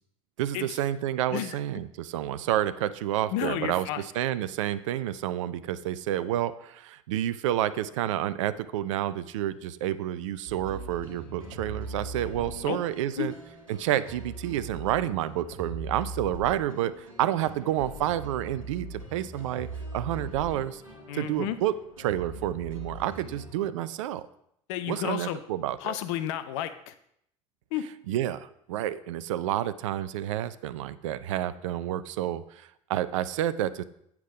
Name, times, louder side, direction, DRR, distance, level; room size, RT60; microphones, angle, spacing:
voice 1, 0.4-13.3 13.7-20.8 21.1-24.2 24.9-25.9 28.1-33.8, right 12 dB, 70° right, 15 dB, 0.5 m, -29 dB
voice 2, 3.3-4.0 12.4-12.8 13.2-13.3 21.1-21.6 24.7-25.4 25.8-26.9 27.7-27.8, left 12 dB, 60° left, 11 dB, 0.7 m, -32 dB
sound 1, 10.5-23.5, right 2 dB, 90° right, 1.3 m, -41 dB
8.2 x 6.0 x 4.9 m, 0.72 s
figure-of-eight pair, 60°, 17 cm